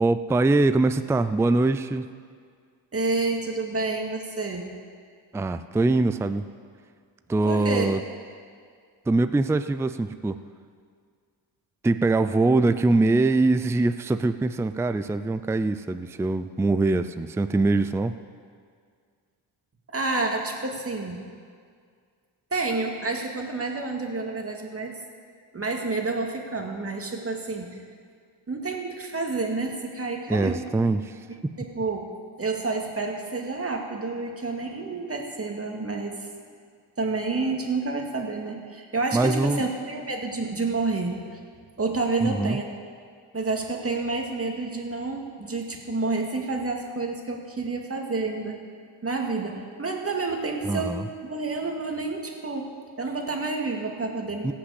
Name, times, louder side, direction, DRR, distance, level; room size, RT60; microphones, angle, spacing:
voice 1, 0.0-2.1 5.3-6.5 7.3-8.0 9.1-10.4 11.8-18.1 30.3-31.1 31.4-31.5 39.1-39.6 42.2-42.6 50.6-51.0 54.4-54.5, right 2 dB, 5° right, 11 dB, 0.4 m, -23 dB
voice 2, 2.9-4.7 7.5-7.9 19.9-21.2 22.5-24.9 25.5-27.8 28.5-30.6 31.6-32.1 32.4-36.3 37.0-41.4 41.8-42.7 43.3-48.6 49.0-52.7 53.0-54.5, right 3 dB, 30° right, 2 dB, 2.2 m, -29 dB
16.5 x 6.1 x 8.3 m, 2.1 s
cardioid pair, 70°, 48 cm